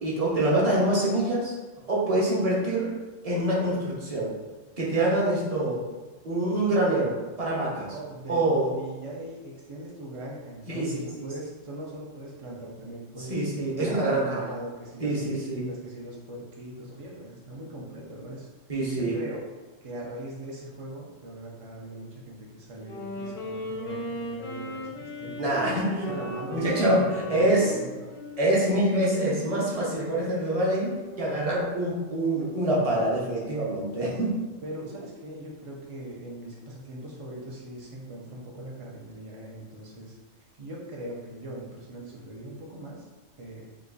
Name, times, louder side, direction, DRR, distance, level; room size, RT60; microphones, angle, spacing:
voice 1, 0.0-1.5 1.9-2.9 3.2-4.3 4.8-5.8 6.2-7.9 8.3-8.7 10.7-11.3 13.2-14.4 15.0-15.6 18.7-19.1 25.4-26.1 26.5-27.7 28.4-34.4, right 1 dB, 35° right, -5 dB, 0.8 m, -25 dB
voice 2, 7.7-13.4 13.8-18.5 18.9-19.4 19.8-28.1 34.6-43.1 43.4-43.7, right 1 dB, 60° right, -4 dB, 0.3 m, -40 dB
Wind instrument woodwind instrument, 22.7-31.4, equal, 45° left, 0.5 m, -38 dB
3.0 x 2.5 x 3.7 m, 1.2 s
omnidirectional pair, 1.3 m